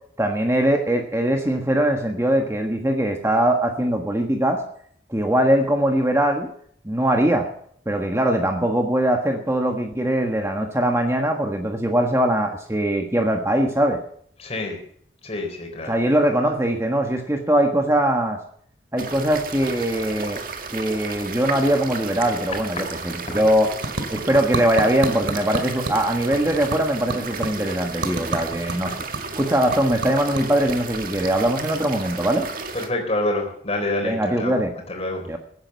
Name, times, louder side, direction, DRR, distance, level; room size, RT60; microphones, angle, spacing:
voice 1, 0.2-4.6 5.1-6.5 6.8-7.5 7.9-14.0 15.9-18.4 18.9-20.4 20.7-23.7 24.1-28.9 29.3-32.5 34.0-34.7 35.3-35.4, right 1 dB, 15° right, 4 dB, 1.4 m, -21 dB
voice 2, 14.4-14.8 15.2-15.9 23.3-23.4 32.7-34.6 34.9-35.3, left 1 dB, 35° left, 2 dB, 3.9 m, -27 dB
sound 1, 19.0-32.9, right 4 dB, 50° right, 1.8 m, -34 dB
sound 2, 22.9-32.3, right 2 dB, 85° right, 2.5 m, -33 dB
16.0 x 9.9 x 6.9 m, 0.62 s
head